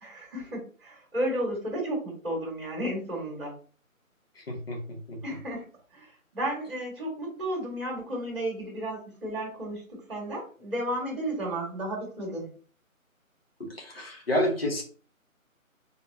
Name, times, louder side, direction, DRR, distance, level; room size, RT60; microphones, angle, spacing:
voice 1, 0.0-3.5 5.2-5.6 5.9-12.5, right 1 dB, 40° right, -2 dB, 1.9 m, -33 dB
voice 2, 4.4-5.2 13.8-14.8, left 1 dB, 45° left, 0 dB, 1.5 m, -30 dB
4.1 x 3.7 x 2.9 m, 0.40 s
figure-of-eight pair, 155°, 42 cm